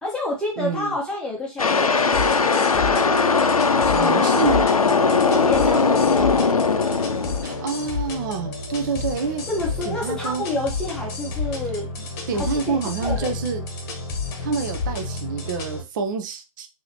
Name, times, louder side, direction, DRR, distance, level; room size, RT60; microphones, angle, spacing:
voice 1, 0.0-2.9 5.0-6.5 9.5-12.1 12.5-13.4, left 1 dB, 5° left, -3 dB, 0.9 m, -29 dB
voice 2, 0.6-0.9 3.8-4.6 7.4-9.4 9.9-10.4 12.3-13.6 14.4-16.7, right 5 dB, 35° right, 5 dB, 0.6 m, -27 dB
sound 1, 1.6-7.9, left 4 dB, 80° left, 0.6 m, -19 dB
sound 2, 2.1-15.8, left 3 dB, 30° left, 1.1 m, -31 dB
6.2 x 2.8 x 2.9 m, 0.28 s
figure-of-eight pair, 130°, 18 cm